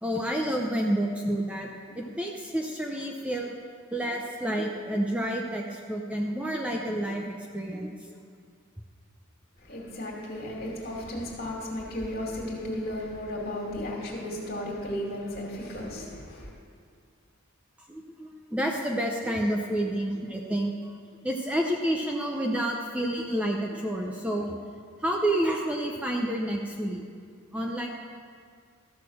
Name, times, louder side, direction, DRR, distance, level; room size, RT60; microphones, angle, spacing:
voice 1, 0.0-1.7 1.9-3.6 3.9-7.9 17.9-20.8 21.2-24.6 25.0-27.0 27.5-27.9, right 1 dB, 5° right, 0 dB, 0.6 m, -29 dB
voice 2, 9.6-16.5, left 1 dB, 45° left, -2 dB, 2.3 m, -34 dB
13.5 x 6.5 x 6.3 m, 2.1 s
head